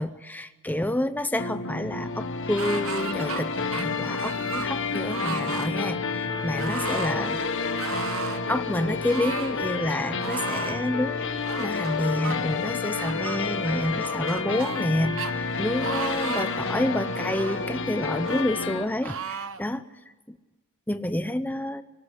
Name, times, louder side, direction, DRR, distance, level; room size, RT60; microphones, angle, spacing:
voice 1, 0.0-7.4 8.5-19.8 20.3-20.4 20.9-21.8, left 1 dB, 10° left, 10 dB, 0.7 m, -29 dB
sound 1, 1.4-18.9, left 4 dB, 60° left, 1.8 m, -30 dB
sound 2, 2.6-3.4 3.7-4.7 5.1-5.7 6.6-7.2 7.8-8.4 9.1-9.6 10.2-10.8 11.5-12.4 13.0-13.4 14.0-14.9 15.2-15.3 15.8-16.6 17.1-17.7 18.2-18.5 19.0-19.6, right 6 dB, 65° right, 1.1 m, -35 dB
24.0 x 18.5 x 9.5 m, 1.2 s
head